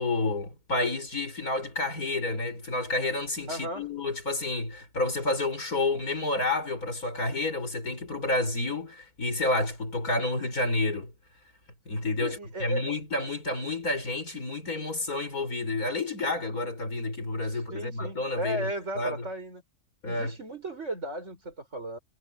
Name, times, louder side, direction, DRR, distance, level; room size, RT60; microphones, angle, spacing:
voice 1, 0.0-11.1 11.9-18.7 19.0-19.3 20.0-20.3, left 2 dB, 85° left, 6.6 m, -30 dB
voice 2, 3.5-3.9 12.2-12.8 17.4-19.6 20.0-22.0, right 1 dB, 55° right, 6.8 m, -35 dB
omnidirectional pair, 1.5 m